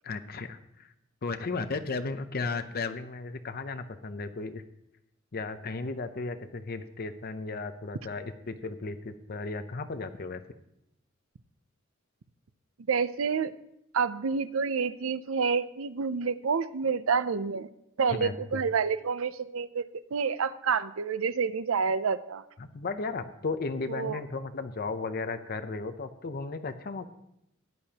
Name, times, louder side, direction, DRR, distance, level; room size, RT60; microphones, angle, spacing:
voice 1, 0.0-0.9 1.2-4.6 5.3-10.4 18.2-18.6 22.6-27.1, left 3 dB, 50° left, 10 dB, 0.7 m, -35 dB
voice 2, 12.9-13.5 13.9-17.7 18.0-22.4 23.9-24.2, right 5 dB, 85° right, 14 dB, 0.5 m, -28 dB
16.5 x 10.5 x 2.9 m, 0.81 s
head